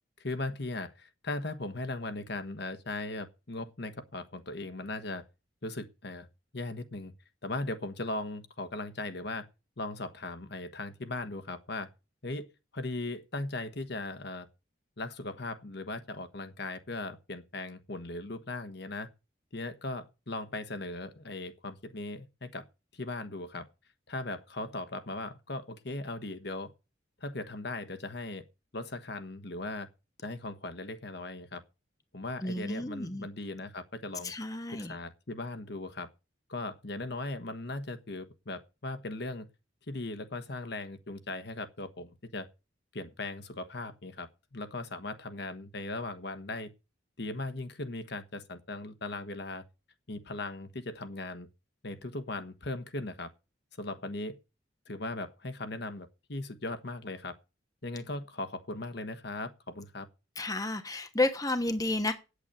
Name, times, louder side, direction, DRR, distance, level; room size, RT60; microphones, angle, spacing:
voice 1, 0.2-5.2 5.6-6.3 6.5-7.1 7.4-9.5 9.8-11.9 12.2-14.5 15.0-19.1 19.5-22.6 22.9-23.7 24.1-26.7 27.2-28.4 28.7-29.9 30.2-31.6 32.1-34.3 34.7-36.1 36.5-39.5 39.9-42.5 42.9-46.7 47.2-49.6 50.1-51.5 51.8-53.3 53.8-54.4 54.9-57.3 57.8-60.1, left 2 dB, 55° left, 1.3 m, -38 dB
voice 2, 32.4-33.3 34.2-35.0 60.4-62.1, left 2 dB, 20° left, 1.1 m, -31 dB
8.3 x 8.1 x 8.9 m
head